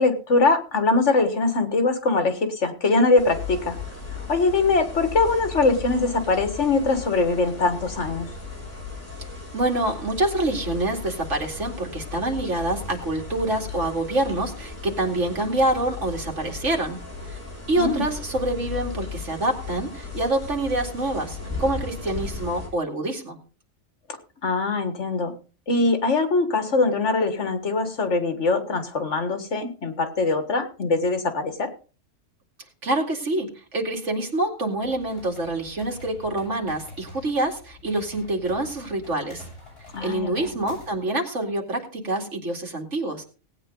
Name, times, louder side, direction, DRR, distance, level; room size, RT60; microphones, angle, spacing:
voice 1, 0.0-3.8 4.1-8.3 17.8-18.0 24.1-25.3 25.7-31.7 39.9-40.5, left 3 dB, 70° left, 8 dB, 2.0 m, -22 dB
sound 1, 3.2-22.7, left 4 dB, 35° left, 5.3 m, -36 dB
voice 2, 9.5-17.0 17.3-17.4 17.7-23.4 32.8-39.4 40.0-43.2, right 1 dB, 75° right, 1 dB, 2.8 m, -26 dB
sound 2, 34.7-41.1, left 2 dB, 50° left, 7.3 m, -46 dB
18.0 x 9.0 x 3.8 m, 0.36 s
omnidirectional pair, 1.3 m